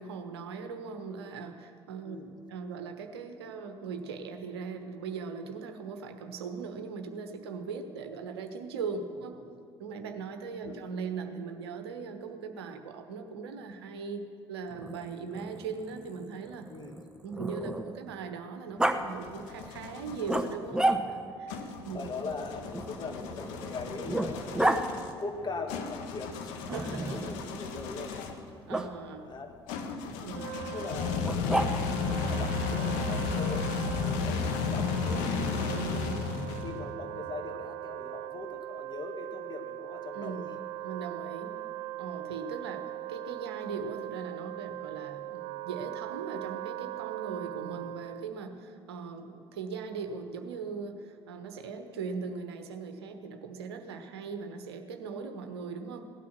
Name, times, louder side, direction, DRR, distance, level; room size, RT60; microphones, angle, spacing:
voice 1, 0.0-2.2 2.5-9.4 9.8-16.7 17.2-22.1 26.7-27.5 28.7-29.4 30.2-30.6 35.6-36.3 40.1-40.5 40.8-41.6 42.0-56.1, right 5 dB, 70° right, 7 dB, 1.2 m, -39 dB
Growling, 14.7-18.1 18.8-19.0 20.3-21.4 22.7-24.8 26.7-27.4 28.7-28.9 31.2-32.1, right 1 dB, 5° right, 1.0 m, -32 dB
voice 2, 16.7-17.0 20.9-21.0 21.9-24.7 25.2-26.6 26.8-28.2 29.1-29.5 30.7-31.5 32.0-35.9 36.6-40.5 47.7-48.0, left 3 dB, 30° left, 4 dB, 1.8 m, -41 dB
sound 1, 18.8-20.6 21.5-28.5 29.7-37.0, left 5 dB, 60° left, 1.3 m, -34 dB
Wind instrument woodwind instrument, 30.2-48.4, right 16 dB, 55° right, 0.4 m, -40 dB
17.0 x 12.5 x 6.0 m, 2.6 s
figure-of-eight pair, 55°, 14 cm